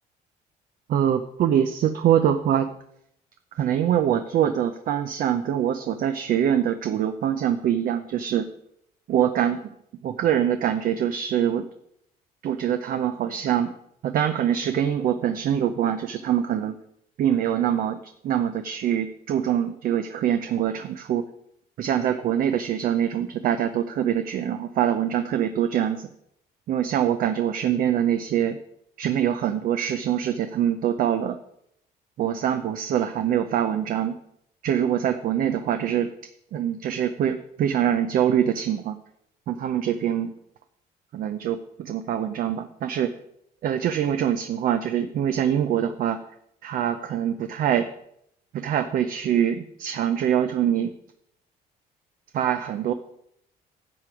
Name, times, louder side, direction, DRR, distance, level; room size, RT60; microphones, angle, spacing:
voice 1, 0.9-2.7 3.6-8.5 9.1-9.6 10.0-11.7 12.4-13.7 14.0-16.8 17.2-18.0 18.2-21.3 21.8-26.1 26.7-28.6 29.0-31.4 32.2-34.2 34.6-36.1 36.5-39.0 39.5-40.3 41.1-43.1 43.6-46.2 46.6-47.9 48.5-50.9 52.3-52.9, right 10 dB, 55° right, 9 dB, 0.6 m, -24 dB
11.0 x 7.6 x 4.9 m, 0.75 s
cardioid pair, 110°, 17 cm